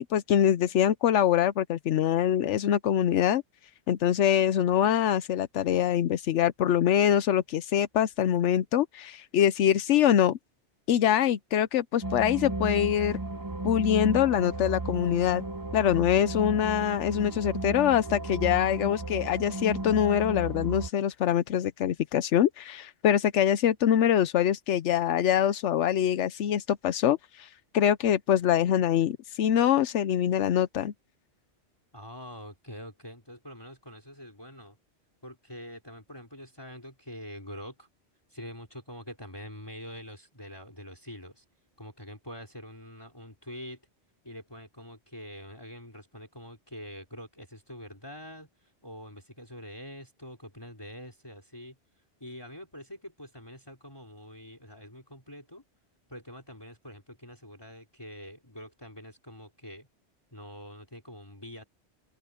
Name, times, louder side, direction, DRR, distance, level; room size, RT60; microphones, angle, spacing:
voice 1, 0.0-3.4 3.9-10.4 10.9-13.2 13.6-15.4 15.7-30.9, left 10 dB, 85° left, 1.0 m, -24 dB
sound 1, 12.0-20.9, right 2 dB, 20° right, 0.6 m, -34 dB
voice 2, 31.9-34.8 35.2-37.9 38.3-41.4 41.8-43.8 44.2-51.8 52.2-55.6 56.1-59.9 60.3-61.6, equal, 20° left, 4.3 m, -45 dB
open air
omnidirectional pair, 1.2 m